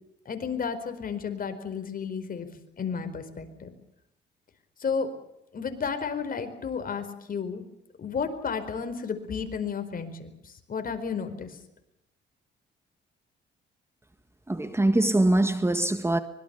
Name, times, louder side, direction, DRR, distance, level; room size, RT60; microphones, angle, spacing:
voice 1, 0.2-2.5 2.8-3.7 4.8-5.1 5.5-7.6 8.0-11.6, left 6 dB, 45° left, 4.7 m, -32 dB
voice 2, 14.5-16.2, right 1 dB, 15° right, 1.6 m, -23 dB
24.5 x 22.5 x 7.0 m
cardioid pair, 90°, 20 cm